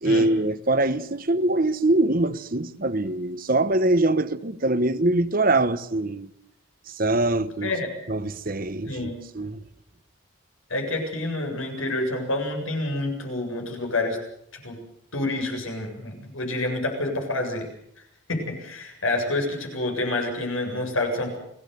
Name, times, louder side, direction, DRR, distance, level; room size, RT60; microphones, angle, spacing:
voice 1, 0.0-6.3 6.9-7.7 8.1-9.6, right 2 dB, 45° right, 1.2 m, -23 dB
voice 2, 10.7-14.2 14.5-14.8 15.1-17.7 18.3-21.4, left 2 dB, 85° left, 7.6 m, -28 dB
29.5 x 19.0 x 6.9 m
head